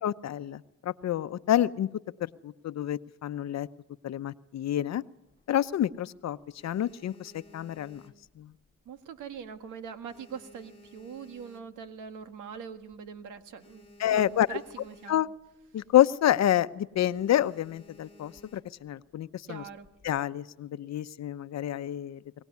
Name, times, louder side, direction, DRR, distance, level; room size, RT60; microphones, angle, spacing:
voice 1, 0.0-1.9 2.2-3.7 4.0-5.0 5.5-6.4 6.6-8.0 8.4-8.5 14.0-14.6 15.1-15.3 15.7-19.6 20.0-22.4, left 12 dB, 60° left, 13 dB, 0.9 m, -28 dB
sound 1, 5.3-6.0 6.4-8.9 9.2-9.6 9.8-12.1 12.6-12.7 12.8-13.0 13.3-15.5 15.8-16.0 16.4-16.6 17.1-18.9 19.6-20.2, left 1 dB, 20° left, 2.3 m, -56 dB
voice 2, 8.8-15.2 19.5-19.9, right 7 dB, 85° right, 9 dB, 1.8 m, -43 dB
23.5 x 19.0 x 9.5 m, 0.93 s
cardioid pair, 90°, 30 cm